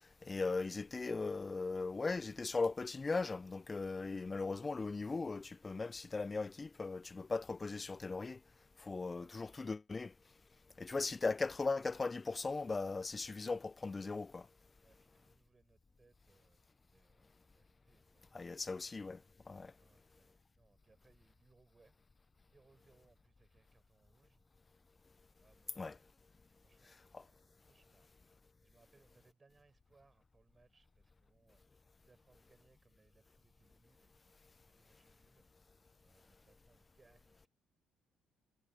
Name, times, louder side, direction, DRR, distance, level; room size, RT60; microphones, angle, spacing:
voice 1, 0.2-8.4 8.8-10.1 10.8-14.5 18.3-19.2 19.5-19.7 25.8-26.0 27.1-27.2, left 3 dB, 30° left, 0.4 m, -38 dB
voice 2, 8.8-9.6 10.9-11.3 14.8-16.6 16.9-18.3 18.6-19.0 19.8-22.0 22.5-24.4 25.4-26.1 26.4-28.1 28.6-31.6 32.0-34.4 34.6-35.4 36.0-37.5, right 3 dB, 30° right, 4.6 m, -71 dB
hypercardioid pair, 50°, 0 cm